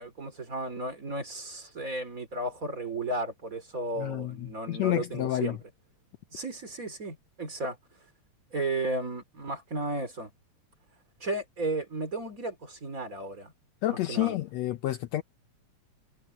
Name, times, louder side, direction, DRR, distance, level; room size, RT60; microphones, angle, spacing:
voice 1, 0.0-5.6 6.3-7.8 8.5-10.3 11.2-13.5 13.9-14.4, right 2 dB, 30° right, 2.9 m, -34 dB
voice 2, 4.0-5.6 13.8-15.2, left 15 dB, 75° left, 1.7 m, -29 dB
omnidirectional pair, 3.5 m